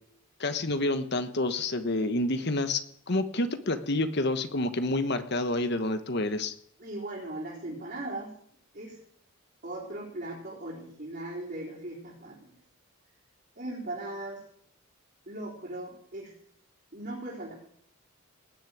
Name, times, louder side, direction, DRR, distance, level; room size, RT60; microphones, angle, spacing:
voice 1, 0.4-2.8 3.1-6.5, left 2 dB, 55° left, 9 dB, 1.3 m, -28 dB
voice 2, 6.8-8.3 8.7-9.0 9.6-12.6 13.6-14.4 15.3-16.3 16.9-17.5, right 1 dB, 50° right, -7 dB, 4.1 m, -38 dB
19.0 x 6.4 x 9.2 m, 0.67 s
head